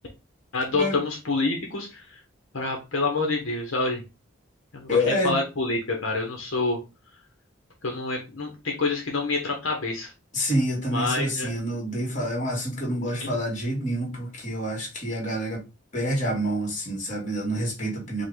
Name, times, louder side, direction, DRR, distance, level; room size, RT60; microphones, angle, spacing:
voice 1, 0.5-2.2 2.5-4.0 4.7-5.0 5.2-6.8 7.8-10.1 10.9-11.5 13.2-13.3, left 3 dB, 75° left, 1.1 m, -27 dB
voice 2, 4.9-5.3 10.3-15.6 15.9-18.2, equal, 35° left, 2.1 m, -27 dB
5.3 x 2.5 x 3.8 m
head